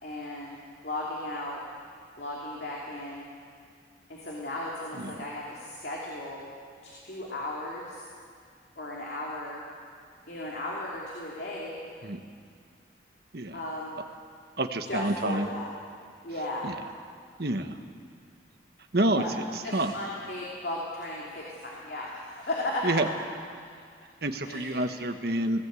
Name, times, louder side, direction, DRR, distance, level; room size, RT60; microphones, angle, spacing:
voice 1, 0.0-0.6 0.8-1.6 2.2-3.2 4.1-6.5 6.8-8.0 8.8-9.7 10.3-11.8 13.5-14.0 14.9-15.7 16.2-16.7 19.1-19.3 19.6-22.9 24.4-24.9, left 1 dB, 60° left, -4 dB, 3.0 m, -35 dB
voice 2, 14.6-15.5 16.6-16.7 17.4-17.8 18.9-19.2 19.5-19.9 22.8-23.1 24.2-25.6, right 1 dB, 55° right, 7 dB, 1.2 m, -28 dB
20.0 x 17.0 x 8.3 m, 2.1 s
head